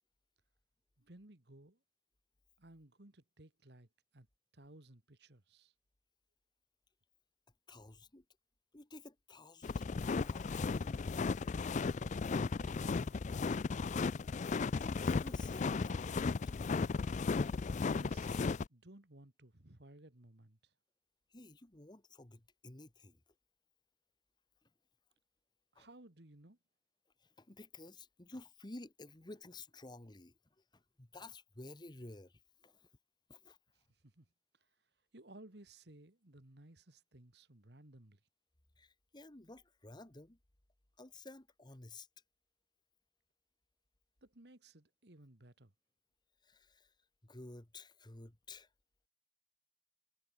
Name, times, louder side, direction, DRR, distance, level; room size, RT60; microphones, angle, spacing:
voice 1, 1.0-1.8 2.6-4.3 4.5-5.7 12.4-13.7 17.9-20.7 25.7-26.6 33.8-34.3 34.5-38.2 44.2-45.7, right 1 dB, 65° right, 2.2 m, -59 dB
voice 2, 7.7-8.2 8.7-11.2 14.8-16.3 21.3-23.2 24.6-24.7 25.7-25.9 27.2-32.9 33.3-33.6 38.8-40.4 41.0-42.1 46.4-46.9 47.2-48.7, left 2 dB, 25° left, 1.4 m, -53 dB
sound 1, 9.6-18.6, left 4 dB, 45° left, 0.4 m, -35 dB
head